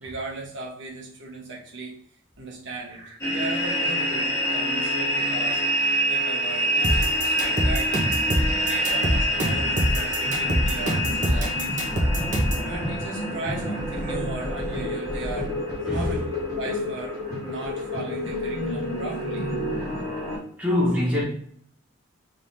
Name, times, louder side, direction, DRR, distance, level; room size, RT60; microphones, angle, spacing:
voice 1, 0.0-1.9 2.4-5.6 6.1-8.2 8.5-12.0 12.6-15.5 15.9-16.3 16.5-17.2 17.4-19.5, right 2 dB, 60° right, -2 dB, 1.1 m, -37 dB
sound 1, 3.2-20.4, equal, 15° left, 1.3 m, -27 dB
sound 2, 6.8-12.7, equal, 40° right, 0.8 m, -24 dB
voice 2, 20.6-21.2, left 1 dB, 5° right, -6 dB, 0.9 m, -23 dB
3.8 x 3.2 x 2.7 m, 0.62 s
head